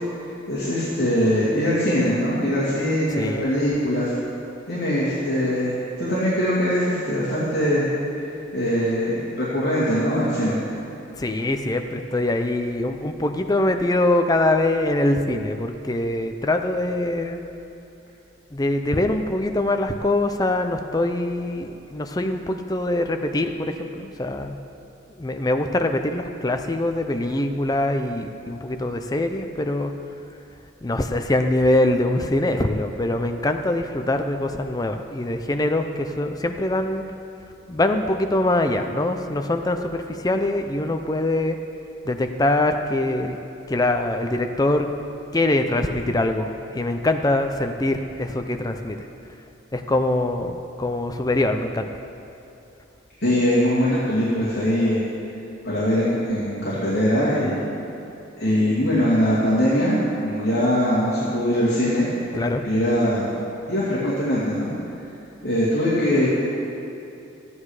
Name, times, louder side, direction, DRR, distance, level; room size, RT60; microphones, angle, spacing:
voice 1, 0.5-4.1 4.7-7.9 8.5-10.6 53.2-55.0 55.6-57.6 58.4-62.1 62.6-63.3 63.7-64.7 65.4-66.3, equal, 55° left, -10 dB, 2.5 m, -22 dB
voice 2, 3.2-3.5 11.2-17.4 18.5-24.5 25.2-29.9 30.8-37.0 37.7-41.6 42.0-43.4 43.7-44.9 45.3-46.5 46.7-49.0 49.7-51.9 62.3-62.6, left 1 dB, 20° left, 6 dB, 0.5 m, -23 dB
13.0 x 9.7 x 4.8 m, 2.8 s
head